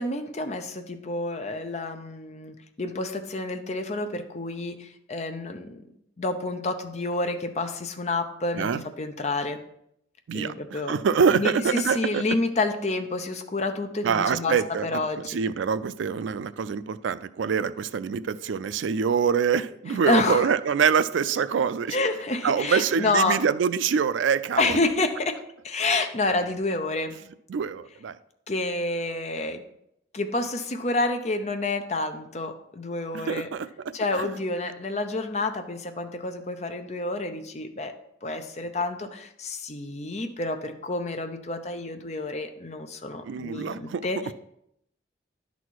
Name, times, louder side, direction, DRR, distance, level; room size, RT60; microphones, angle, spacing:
voice 1, 0.0-5.9 6.2-8.7 9.0-9.6 10.3-11.0 11.3-15.4 19.9-20.5 21.9-23.4 24.6-27.2 28.5-29.6 30.1-33.5 33.9-37.9 38.2-44.2, left 2 dB, 35° left, 7 dB, 0.6 m, -29 dB
voice 2, 10.3-12.2 14.0-22.0 22.4-24.8 27.5-28.2 33.1-33.7 34.1-34.4 43.2-44.1, right 6 dB, 85° right, 15 dB, 0.4 m, -25 dB
11.0 x 4.1 x 4.6 m, 0.77 s
head